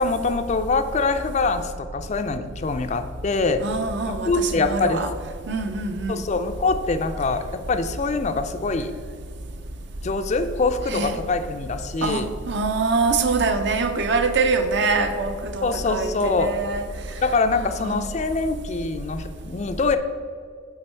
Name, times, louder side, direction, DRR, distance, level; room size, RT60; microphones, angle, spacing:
voice 1, 0.0-3.6 4.1-5.0 6.1-8.9 10.0-12.3 15.6-16.5 17.2-20.0, left 3 dB, 35° left, 9 dB, 0.3 m, -24 dB
voice 2, 3.6-5.1 5.5-6.2 10.9-11.2 12.0-16.9 17.8-18.1, right 4 dB, 55° right, 8 dB, 0.6 m, -24 dB
7.6 x 4.5 x 4.4 m, 2.2 s
head